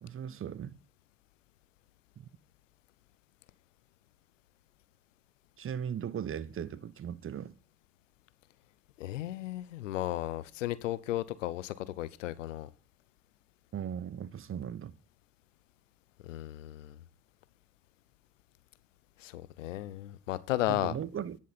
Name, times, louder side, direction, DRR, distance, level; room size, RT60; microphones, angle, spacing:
voice 1, 0.0-0.8 5.6-7.6 13.7-15.0 20.7-21.4, right 8 dB, 35° right, 0.8 m, -38 dB
voice 2, 9.0-12.7 16.2-17.0 19.2-20.9, left 14 dB, 85° left, 0.7 m, -34 dB
9.8 x 7.2 x 4.0 m
hypercardioid pair, 55°, 37 cm